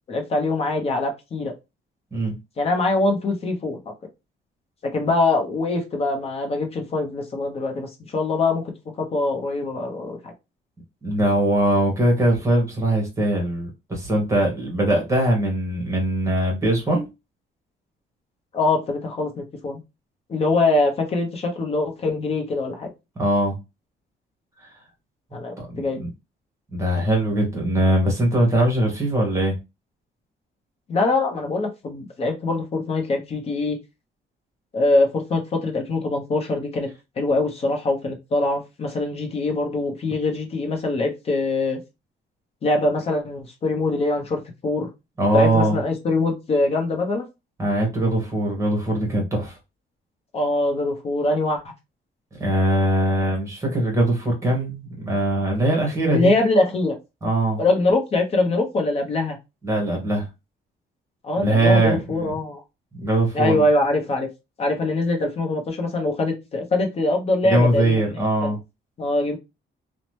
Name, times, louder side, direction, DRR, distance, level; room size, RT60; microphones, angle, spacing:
voice 1, 0.1-1.5 2.6-3.8 4.8-8.7 9.0-10.3 18.5-19.8 20.3-22.9 25.3-26.0 30.9-33.8 34.7-36.9 37.2-41.8 42.6-44.9 45.3-47.3 50.3-51.6 56.1-57.0 57.6-59.4 61.2-62.6 63.3-64.3 64.6-68.2 69.0-69.4, left 2 dB, 35° left, 0.7 m, -23 dB
voice 2, 11.0-17.1 23.2-23.6 25.6-26.1 26.7-29.5 45.2-45.8 47.6-49.6 52.4-56.3 57.2-57.6 59.6-60.3 61.4-62.2 62.9-63.6 67.4-68.6, right 1 dB, 15° right, 1.0 m, -21 dB
2.8 x 2.1 x 3.1 m
cardioid pair, 170°, 19 cm